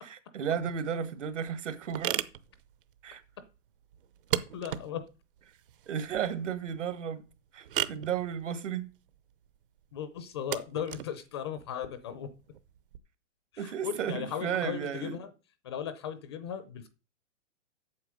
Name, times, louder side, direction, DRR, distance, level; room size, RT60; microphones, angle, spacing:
voice 1, 0.0-2.2 3.0-3.2 5.9-7.2 7.5-8.9 13.6-15.2, right 8 dB, 70° right, 1.9 m, -33 dB
sound 1, 0.6-13.0, right 11 dB, 45° right, 0.8 m, -39 dB
voice 2, 4.5-5.1 9.9-12.3 13.5-15.3 15.6-16.9, left 8 dB, 20° left, 0.5 m, -37 dB
8.5 x 7.2 x 6.3 m
hypercardioid pair, 170°, 37 cm